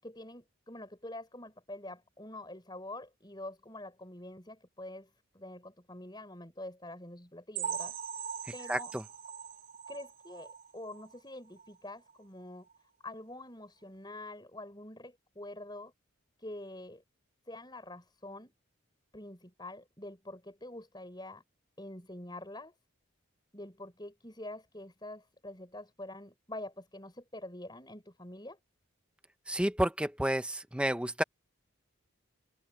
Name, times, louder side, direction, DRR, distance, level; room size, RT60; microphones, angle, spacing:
voice 1, 0.0-8.0 8.5-8.9 9.9-12.7 13.0-15.9 16.4-17.0 17.5-18.5 19.1-21.4 21.8-22.7 23.5-28.6, left 1 dB, 20° left, 6.9 m, -46 dB
sound 1, 7.5-11.2 11.6-11.7 12.1-12.2 12.7-12.8, right 7 dB, 40° right, 3.2 m, -41 dB
voice 2, 8.7-9.0 29.5-31.2, right 1 dB, 5° right, 1.0 m, -30 dB
head